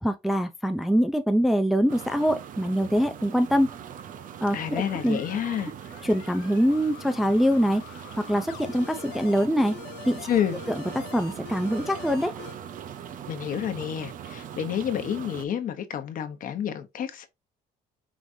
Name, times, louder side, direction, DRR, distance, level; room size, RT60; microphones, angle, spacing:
voice 1, 0.0-3.7 4.4-5.2 6.0-7.8 8.2-9.8 10.1-10.2 10.9-12.3, equal, ahead, 0.4 m, -24 dB
sound 1, 1.9-15.5, right 9 dB, 55° right, 0.6 m, -41 dB
voice 2, 4.5-5.7 10.3-10.6 13.3-17.3, left 9 dB, 55° left, 0.9 m, -29 dB
sound 2, 4.9-12.6, left 11 dB, 85° left, 0.5 m, -45 dB
5.0 x 3.1 x 2.6 m
cardioid pair, 110°, 17 cm